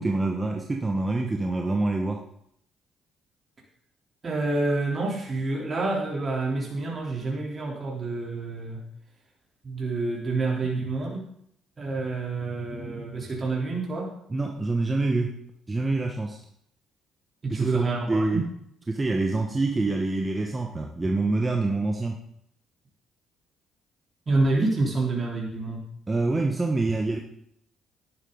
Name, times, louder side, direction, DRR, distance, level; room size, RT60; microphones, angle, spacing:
voice 1, 0.0-2.2 14.3-15.3 15.7-16.4 17.5-18.4 18.9-22.2 26.1-27.2, right 2 dB, 25° right, 2 dB, 1.2 m, -26 dB
voice 2, 4.2-8.8 9.6-11.3 11.8-14.1 17.4-18.4 24.3-25.8, right 3 dB, 40° right, -3 dB, 3.5 m, -28 dB
12.0 x 11.0 x 4.0 m, 0.70 s
supercardioid pair, 60°, 0 cm